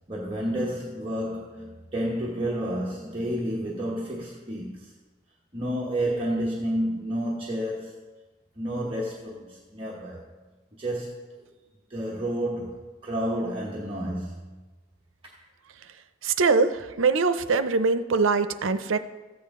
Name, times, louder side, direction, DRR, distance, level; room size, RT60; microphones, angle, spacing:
voice 1, 0.1-4.8 5.5-8.1 8.6-10.2 10.8-11.4 11.9-14.3, equal, 25° right, 1.1 m, -30 dB
voice 2, 16.2-19.0, right 4 dB, 85° right, 0.6 m, -23 dB
14.5 x 8.6 x 3.6 m
head